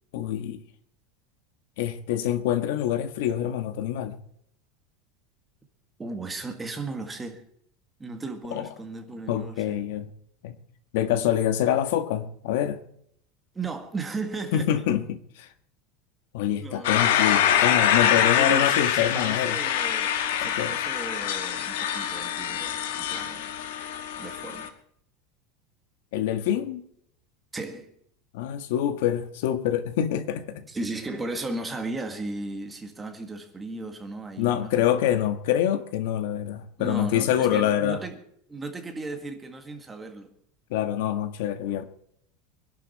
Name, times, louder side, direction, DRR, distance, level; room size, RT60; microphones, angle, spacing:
voice 1, 0.1-0.6 1.8-4.2 8.5-8.7 9.3-10.1 10.4-10.6 10.9-12.8 14.5-15.5 16.3-19.6 20.4-20.7 26.1-26.8 28.3-30.6 34.4-38.0 40.7-41.8, left 11 dB, 65° left, 1.6 m, -26 dB
voice 2, 6.0-7.4 8.0-9.8 13.6-14.8 16.6-17.0 18.2-20.1 20.4-23.5 24.2-24.7 27.5-27.9 30.7-34.9 36.8-38.2 38.5-40.3, right 3 dB, 10° right, 1.7 m, -35 dB
sound 1, 16.8-24.7, left 9 dB, 85° left, 1.8 m, -25 dB
24.5 x 11.5 x 4.3 m
supercardioid pair, 180°, 0 cm